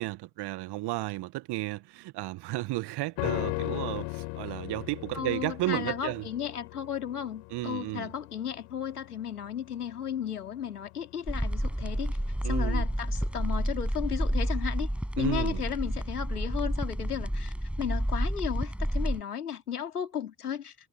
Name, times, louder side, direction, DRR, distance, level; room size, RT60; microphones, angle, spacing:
voice 1, 0.0-6.2 7.5-8.1 12.4-12.8 15.2-15.6, right 19 dB, 60° right, 1.6 m, -33 dB
sound 1, 3.2-12.6 12.9-13.0, left 31 dB, 70° left, 5.4 m, -38 dB
voice 2, 5.1-12.2 12.4-14.9 15.2-20.7, left 9 dB, 85° left, 2.8 m, -34 dB
sound 2, 11.3-19.2, equal, 5° right, 7.5 m, -30 dB
figure-of-eight pair, 45°, 45 cm